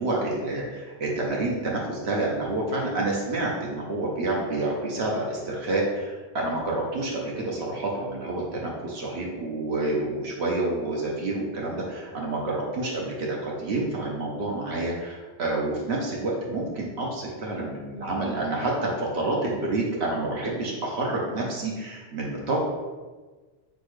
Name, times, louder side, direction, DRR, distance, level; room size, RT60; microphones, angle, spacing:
voice 1, 0.0-22.6, right 2 dB, 80° right, -3 dB, 1.0 m, -28 dB
4.1 x 4.1 x 3.1 m, 1.3 s
omnidirectional pair, 1.1 m